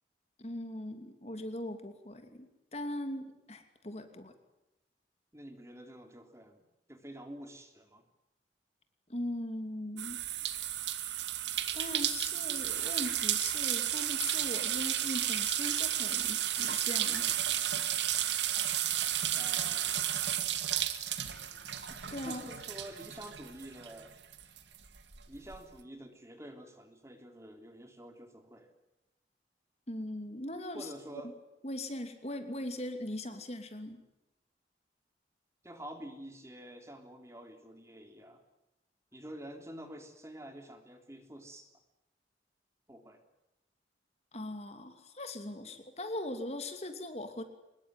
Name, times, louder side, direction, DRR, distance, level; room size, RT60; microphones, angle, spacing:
voice 1, 0.4-4.3 9.1-10.2 11.7-17.5 22.1-22.4 29.9-30.9 31.6-34.0 44.3-47.4, left 1 dB, 35° left, 7 dB, 2.7 m, -40 dB
voice 2, 5.3-6.6 6.9-8.0 19.3-20.1 22.2-24.1 25.3-28.7 30.7-31.3 35.6-38.4 39.1-41.7 42.9-43.2, right 1 dB, 15° right, 6 dB, 3.4 m, -48 dB
sound 1, 10.0-24.0 24.3-25.6, right 11 dB, 90° right, 2.3 m, -33 dB
24.5 x 21.5 x 9.5 m, 0.94 s
head